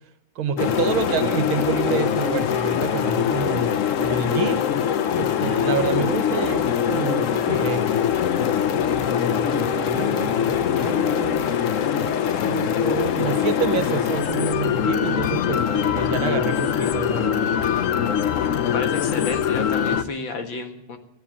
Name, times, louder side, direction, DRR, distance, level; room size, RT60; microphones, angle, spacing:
voice 1, 0.4-4.7 5.2-7.9 8.7-11.5 12.2-17.5, right 6 dB, 70° right, 10 dB, 1.9 m, -28 dB
sound 1, 0.6-20.0, left 9 dB, 80° left, 0.7 m, -23 dB
voice 2, 18.7-21.0, left 3 dB, 65° left, 5 dB, 2.5 m, -31 dB
14.5 x 11.5 x 7.3 m, 0.83 s
omnidirectional pair, 2.3 m